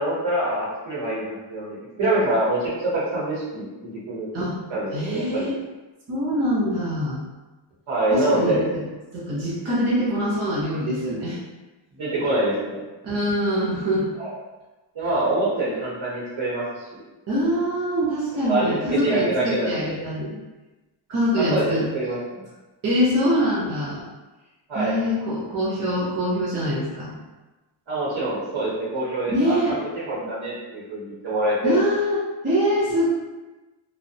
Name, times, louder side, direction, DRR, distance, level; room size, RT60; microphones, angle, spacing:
voice 1, 0.0-4.3 4.7-5.5 7.9-8.6 12.0-12.8 14.2-14.3 14.9-17.0 18.5-20.0 21.3-22.4 24.7-25.0 27.9-31.8, right 1 dB, 85° right, -7 dB, 0.9 m, -25 dB
voice 2, 4.9-5.5 6.1-7.2 8.1-8.8 9.1-11.4 13.0-14.1 17.3-20.4 21.1-21.9 22.8-24.0 24.7-27.1 29.3-29.8 31.6-33.1, equal, 35° right, -7 dB, 0.5 m, -24 dB
2.3 x 2.0 x 2.7 m, 1.1 s
wide cardioid pair, 180°, 45 cm